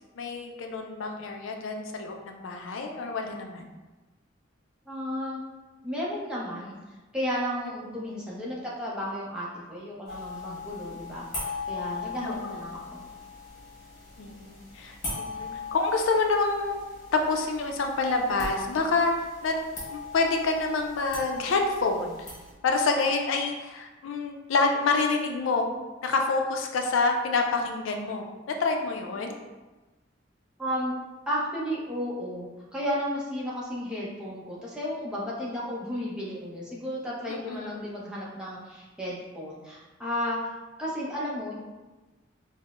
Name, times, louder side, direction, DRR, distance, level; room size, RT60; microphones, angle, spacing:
voice 1, 0.2-3.7 12.2-12.6 14.2-16.8 17.1-19.6 19.9-22.3 22.6-25.7 26.0-29.3 37.3-37.8, left 3 dB, 90° left, 3 dB, 0.4 m, -27 dB
voice 2, 4.9-5.4 5.8-13.0 30.6-30.9 31.3-40.5 40.8-41.5, equal, 5° right, -6 dB, 0.6 m, -33 dB
sound 1, 10.1-22.5, left 4 dB, 40° left, 1.4 m, -40 dB
5.3 x 2.1 x 2.4 m, 1.2 s
head